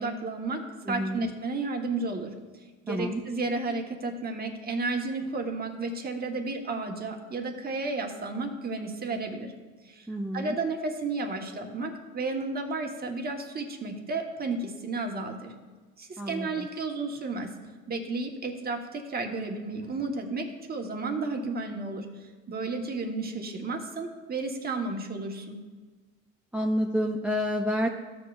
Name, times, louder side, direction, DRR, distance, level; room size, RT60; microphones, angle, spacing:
voice 1, 0.0-2.3 2.8-9.5 9.8-10.1 10.3-15.5 16.0-17.5 17.9-25.6, right 3 dB, 30° right, 3 dB, 1.3 m, -32 dB
voice 2, 0.9-1.3 2.9-3.2 10.1-10.5 16.2-16.7 26.5-27.9, equal, 5° right, 1 dB, 0.5 m, -29 dB
14.5 x 6.8 x 2.5 m, 1.4 s
supercardioid pair, 100°, 33 cm